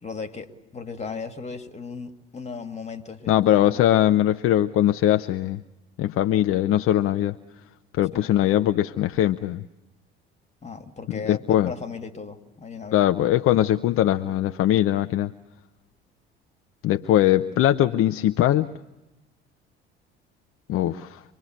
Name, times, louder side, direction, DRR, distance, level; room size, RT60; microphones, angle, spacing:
voice 1, 0.0-3.9 8.1-8.5 10.6-13.1, left 5 dB, 25° left, 8 dB, 2.3 m, -36 dB
voice 2, 3.3-5.6 6.0-7.4 8.0-9.6 11.1-11.7 12.9-15.3 16.8-18.7 20.7-21.2, left 12 dB, 50° left, 9 dB, 0.8 m, -21 dB
26.0 x 21.0 x 7.9 m, 0.99 s
figure-of-eight pair, 60°, 29 cm